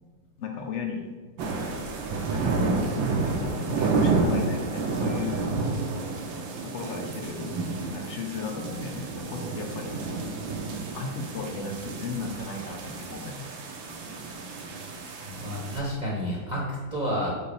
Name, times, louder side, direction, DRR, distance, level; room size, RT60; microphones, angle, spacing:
voice 1, 0.4-1.1 2.3-2.6 3.4-5.6 6.6-7.5 7.9-10.0 10.9-13.5, left 4 dB, 70° left, 3 dB, 0.7 m, -36 dB
sound 1, 1.4-15.8, right 3 dB, 85° right, 1.6 m, -30 dB
voice 2, 15.3-17.3, equal, 30° right, -5 dB, 1.0 m, -30 dB
5.0 x 4.2 x 5.4 m, 1.4 s
omnidirectional pair, 2.1 m